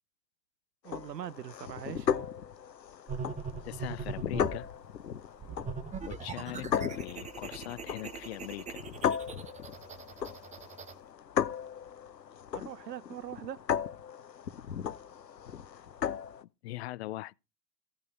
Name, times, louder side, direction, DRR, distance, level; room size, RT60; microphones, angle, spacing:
voice 1, 0.8-2.3 12.5-13.6, right 10 dB, 80° right, 0.6 m, -42 dB
sound 1, 0.9-16.4, left 8 dB, 80° left, 0.7 m, -36 dB
sound 2, 3.1-4.7 5.4-10.9, right 5 dB, 15° right, 1.0 m, -41 dB
voice 2, 3.6-4.7 6.1-8.8 16.1-17.3, left 16 dB, 45° left, 0.5 m, -41 dB
15.0 x 5.3 x 5.1 m
figure-of-eight pair, 90°, 50 cm